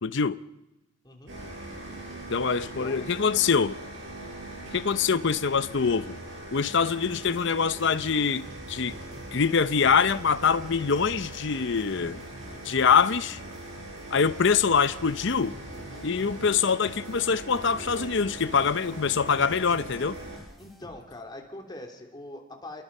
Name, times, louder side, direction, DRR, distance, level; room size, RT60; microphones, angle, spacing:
voice 1, 0.0-0.4 2.3-3.8 4.7-6.2 6.5-9.0 9.3-12.2 12.6-13.4 14.1-15.5 16.0-20.2, left 6 dB, 60° left, 0.7 m, -24 dB
sound 1, 1.3-20.4, right 1 dB, 65° right, 7.7 m, -41 dB
sound 2, 6.7-21.3, equal, ahead, 5.1 m, -50 dB
voice 2, 20.6-22.8, left 1 dB, 20° left, 3.4 m, -42 dB
29.0 x 22.0 x 5.5 m
head